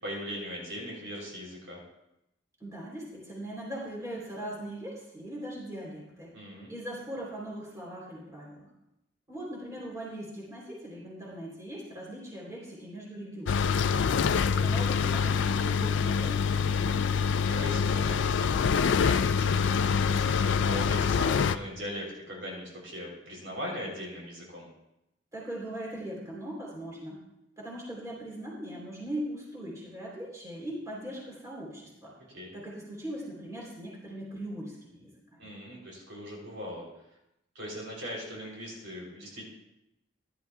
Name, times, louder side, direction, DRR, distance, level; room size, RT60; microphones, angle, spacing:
voice 1, 0.0-1.8 6.3-6.7 14.4-14.7 17.5-24.7 32.3-32.5 35.4-36.9 37.6-39.4, equal, 70° right, -3 dB, 3.5 m, -40 dB
voice 2, 2.6-6.3 6.7-8.7 9.3-13.8 14.2-17.2 25.3-27.2 27.6-32.1 32.5-35.5, right 1 dB, 15° right, -4 dB, 3.4 m, -40 dB
sound 1, 13.5-21.6, left 6 dB, 65° left, 0.4 m, -25 dB
15.5 x 11.0 x 2.3 m, 0.87 s
head